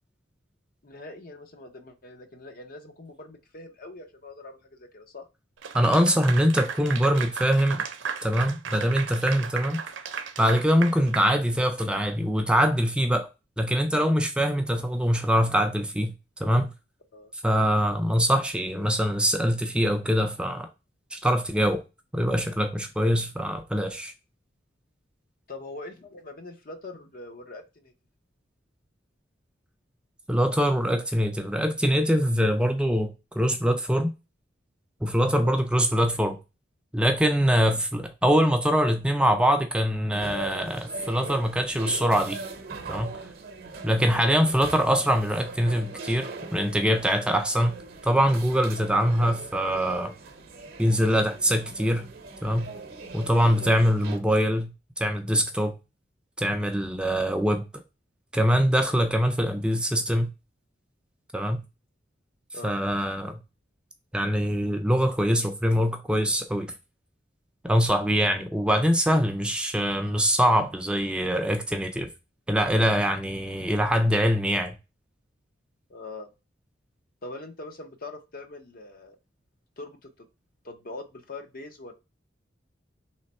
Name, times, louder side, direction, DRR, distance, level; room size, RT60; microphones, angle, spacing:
voice 1, 0.8-5.3 17.1-17.3 25.5-27.9 35.4-35.6 44.1-44.3 53.6-53.8 62.5-62.7 75.9-76.3 77.2-79.2 79.8-80.1 80.6-81.9, left 2 dB, 50° left, 0.7 m, -42 dB
Clapping / Applause, 5.6-12.0, right 6 dB, 90° right, 0.6 m, -35 dB
voice 2, 5.7-7.8 8.2-9.8 10.4-13.3 13.6-16.1 16.4-16.7 17.4-20.7 21.1-21.8 22.1-24.1 30.3-34.1 35.0-36.4 36.9-42.4 42.9-43.1 43.8-47.7 48.0-50.1 50.8-52.1 52.4-52.7 53.1-55.7 56.4-57.6 58.3-60.3 61.3-61.6 62.6-63.4 64.1-66.7 67.6-72.1 72.5-74.8, equal, 5° right, 0.4 m, -23 dB
sound 1, 40.1-54.2, right 3 dB, 55° right, 0.7 m, -41 dB
3.4 x 3.2 x 4.1 m
head